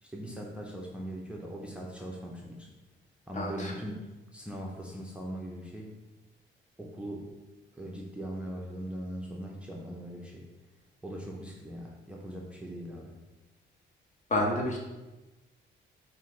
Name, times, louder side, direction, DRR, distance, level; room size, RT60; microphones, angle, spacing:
voice 1, 0.0-2.7 3.3-6.0 6.8-7.3 7.7-10.5 11.0-13.1, equal, 5° right, -2 dB, 0.6 m, -40 dB
voice 2, 3.3-3.7 14.3-14.8, left 1 dB, 40° left, 0 dB, 1.0 m, -29 dB
5.4 x 2.6 x 3.1 m, 1.1 s
cardioid pair, 90°, 20 cm